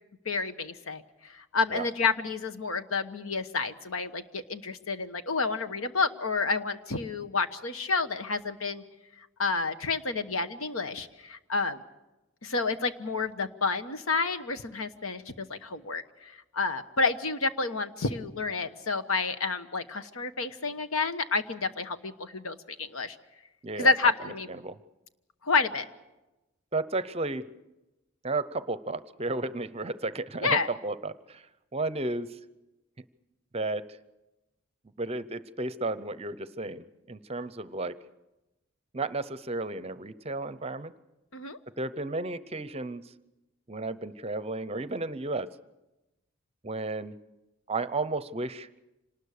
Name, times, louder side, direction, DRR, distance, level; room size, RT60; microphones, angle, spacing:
voice 1, 0.2-1.0 1.3-8.8 9.4-11.8 12.4-23.2 23.8-24.5 25.4-25.8 30.4-30.7 41.3-41.6, left 4 dB, 85° left, 10 dB, 1.2 m, -29 dB
voice 2, 26.7-27.5 28.2-31.5 31.7-32.4 33.5-33.9 35.0-38.0 38.9-40.9 41.7-43.1 43.7-45.5 46.6-47.1 47.7-48.7, right 2 dB, 30° right, 15 dB, 0.7 m, -33 dB
26.0 x 19.5 x 6.6 m, 1.0 s
head